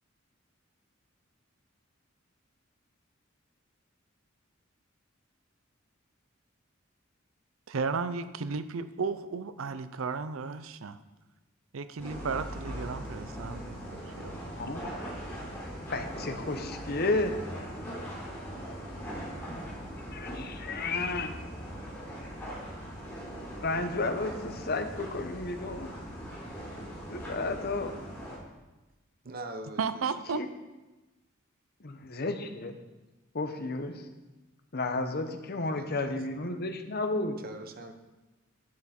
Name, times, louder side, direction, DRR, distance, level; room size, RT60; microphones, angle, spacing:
voice 1, 7.7-11.0 11.7-14.5 29.8-30.4, right 5 dB, 90° right, 12 dB, 0.5 m, -34 dB
sound 1, 12.0-28.4, equal, 10° left, 3.7 m, -40 dB
voice 2, 14.6-14.9 15.9-17.4 20.1-21.3 23.6-25.9 27.1-27.9 30.3-30.5 31.8-32.7 33.3-34.1 34.7-37.4, left 2 dB, 50° left, 7 dB, 1.0 m, -32 dB
voice 3, 29.2-30.0 35.8-36.5 37.4-37.9, right 2 dB, 45° right, 6 dB, 0.9 m, -43 dB
10.5 x 9.5 x 4.4 m, 1.1 s
head